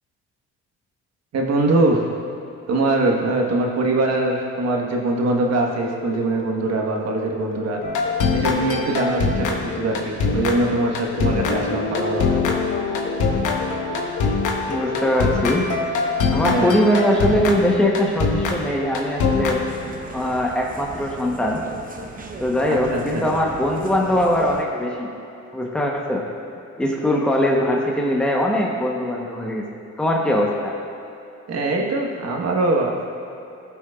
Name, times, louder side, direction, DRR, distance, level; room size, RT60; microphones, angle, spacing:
voice 1, 1.3-2.0 2.7-7.8 8.3-12.6 16.4-16.7 22.7-23.3 31.5-33.1, right 2 dB, 55° right, 0 dB, 1.3 m, -22 dB
sound 1, 5.8-15.6, left 5 dB, 45° left, 1.1 m, -34 dB
sound 2, 7.8-20.2, left 4 dB, 80° left, 1.1 m, -23 dB
voice 2, 14.7-15.7 16.3-19.6 20.1-21.6 22.4-25.1 25.5-26.3 26.8-29.6 30.0-30.7, left 1 dB, 5° left, -1 dB, 0.9 m, -21 dB
sound 3, 19.7-24.6, right 3 dB, 30° right, 0.8 m, -37 dB
16.0 x 6.0 x 2.4 m, 2.8 s
cardioid pair, 90°, 30 cm